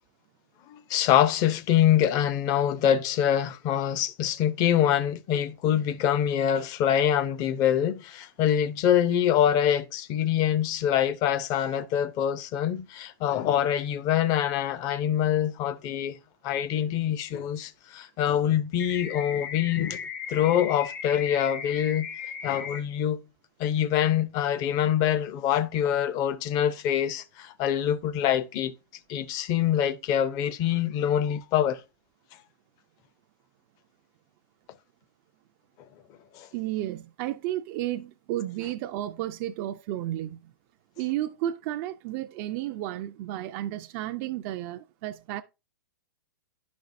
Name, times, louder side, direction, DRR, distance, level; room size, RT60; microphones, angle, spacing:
voice 1, 0.7-16.2 16.4-20.0 20.3-22.1 22.4-23.2 23.6-28.7 29.1-31.8 36.4-36.5, left 10 dB, 35° left, 0.6 m, -25 dB
sound 1, 18.8-22.8, left 7 dB, 65° left, 1.4 m, -37 dB
voice 2, 36.5-40.4 41.0-45.4, right 13 dB, 40° right, 0.4 m, -32 dB
10.5 x 5.2 x 2.6 m
hypercardioid pair, 125°, 11 cm